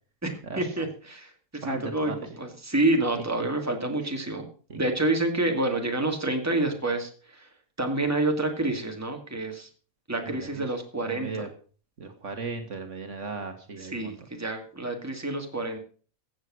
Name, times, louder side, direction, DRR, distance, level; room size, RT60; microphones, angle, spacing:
voice 1, 0.2-4.5 4.7-7.5 7.8-9.7 10.1-11.4 13.8-15.8, right 2 dB, 10° right, 3 dB, 2.3 m, -28 dB
voice 2, 1.6-2.3 3.2-3.5 4.7-4.8 10.2-10.7 11.0-11.5 12.0-14.1, right 4 dB, 60° right, 6 dB, 1.9 m, -36 dB
14.5 x 8.3 x 6.2 m, 0.41 s
omnidirectional pair, 1.4 m